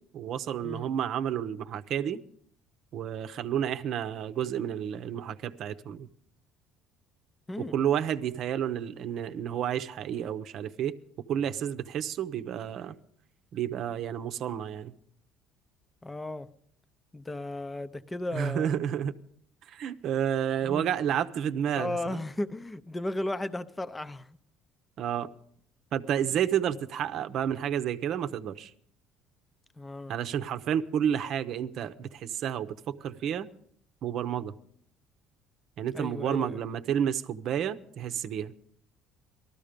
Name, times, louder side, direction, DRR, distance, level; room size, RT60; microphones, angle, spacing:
voice 1, 0.1-2.2 2.9-6.1 7.6-11.0 11.3-12.9 13.5-14.9 18.3-19.2 19.7-22.2 25.0-25.3 25.9-28.7 30.1-33.5 34.0-34.5 35.8-38.5, right 9 dB, 60° right, 0.8 m, -30 dB
voice 2, 16.0-16.5 17.1-18.7 20.6-21.0 21.7-24.4 29.8-30.1 35.9-36.6, left 1 dB, 15° left, 0.7 m, -35 dB
18.5 x 13.0 x 5.1 m
cardioid pair, 105°, 0 cm